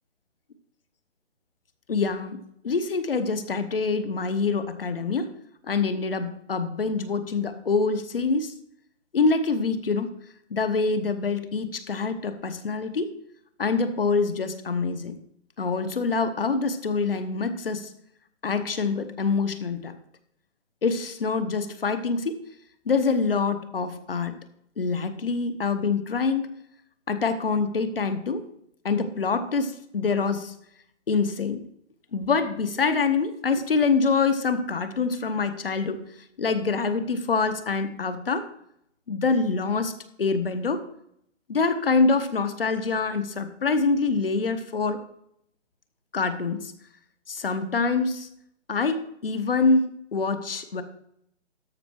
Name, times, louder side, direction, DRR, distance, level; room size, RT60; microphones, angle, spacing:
voice 1, 1.9-5.3 5.6-8.5 9.1-10.1 10.5-13.1 13.6-15.2 15.6-17.9 18.4-19.9 20.8-22.4 22.9-24.4 24.8-26.5 27.1-28.4 28.8-30.5 31.1-31.6 32.1-36.0 36.4-38.4 39.1-39.9 40.2-40.8 41.5-45.0 46.1-46.7 47.3-48.3 48.7-50.8, left 4 dB, 50° left, 10 dB, 1.1 m, -25 dB
13.0 x 5.5 x 4.6 m, 0.72 s
hypercardioid pair, 175°, 36 cm